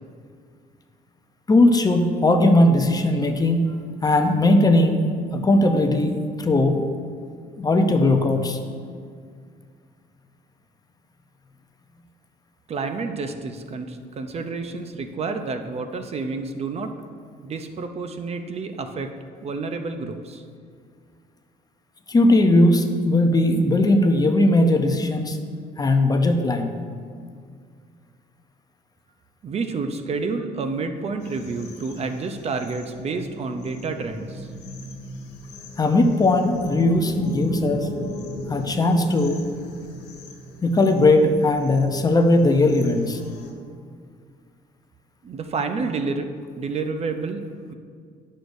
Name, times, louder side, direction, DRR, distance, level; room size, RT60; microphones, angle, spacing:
voice 1, 1.5-3.7 4.0-6.9 7.6-8.6 22.1-25.4 25.8-26.7 35.8-37.9 38.5-39.4 40.6-43.2, left 2 dB, 20° left, 6 dB, 0.6 m, -18 dB
voice 2, 12.7-16.9 17.4-19.1 19.4-20.4 29.4-34.5 45.2-46.3 46.6-47.7, right 4 dB, 40° right, 7 dB, 0.6 m, -29 dB
sound 1, 31.2-43.5, left 1 dB, 85° left, 1.3 m, -37 dB
11.0 x 6.4 x 2.6 m, 2.1 s
cardioid pair, 110°, 17 cm